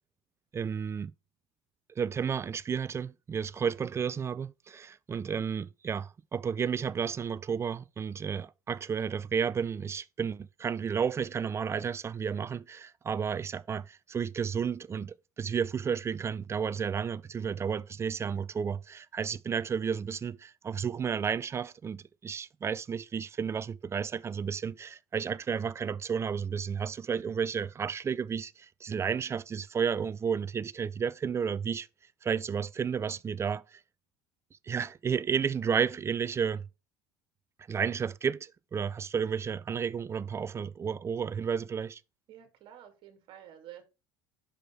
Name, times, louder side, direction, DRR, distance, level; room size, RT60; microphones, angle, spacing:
voice 1, 0.5-1.1 2.0-31.9 32.2-33.8 34.7-36.7 37.7-42.0, right 6 dB, 25° right, 0.5 m, -32 dB
voice 2, 42.3-43.8, right 11 dB, 60° right, 2.3 m, -50 dB
6.4 x 5.0 x 4.4 m
hypercardioid pair, 80°, 10 cm